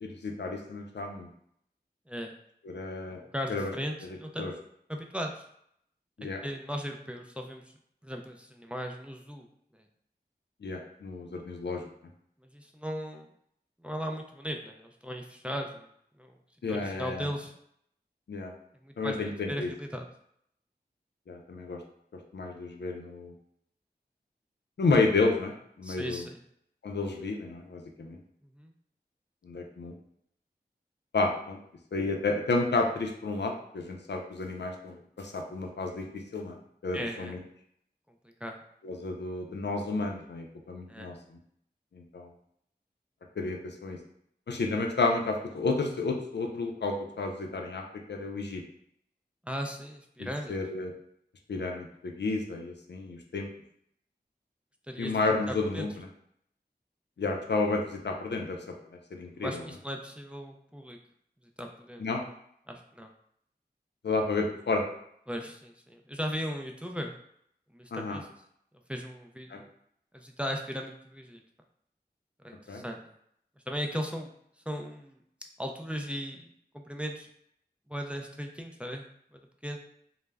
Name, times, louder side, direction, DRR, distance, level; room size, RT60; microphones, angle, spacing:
voice 1, 0.0-1.3 2.6-3.2 3.5-3.7 4.0-4.5 6.2-6.4 10.6-11.8 16.6-17.3 18.3-18.5 19.0-19.7 21.3-21.8 22.3-23.3 24.8-25.5 25.8-26.2 26.8-28.2 29.4-29.9 31.1-31.6 31.9-36.6 36.8-37.4 38.8-41.4 41.9-42.3 43.4-44.0 44.5-47.8 48.1-48.6 50.2-50.9 51.5-53.5 55.0-56.1 57.2-58.6 59.1-59.6 62.0-62.2 64.0-64.8 67.9-68.2 69.5-69.6 72.7-72.8, left 3 dB, 85° left, 2 dB, 0.4 m, -31 dB
voice 2, 3.1-4.5 4.9-5.4 6.4-7.6 8.0-9.5 12.4-13.3 13.8-15.8 16.2-16.4 16.7-17.5 18.8-19.2 19.5-20.1 25.8-26.4 28.5-28.7 36.9-37.3 38.4-38.5 40.9-41.1 49.4-50.5 54.9-55.2 55.5-55.9 59.4-61.0 61.6-62.0 62.7-63.1 65.3-67.1 67.7-68.3 68.9-69.7 70.1-71.4 72.4-73.0 73.7-74.3 74.7-75.2 75.6-76.5 76.7-77.3 77.9-79.0 79.3-79.8, equal, 5° right, 2 dB, 0.3 m, -37 dB
2.2 x 2.0 x 3.4 m, 0.70 s
wide cardioid pair, 50°, 17 cm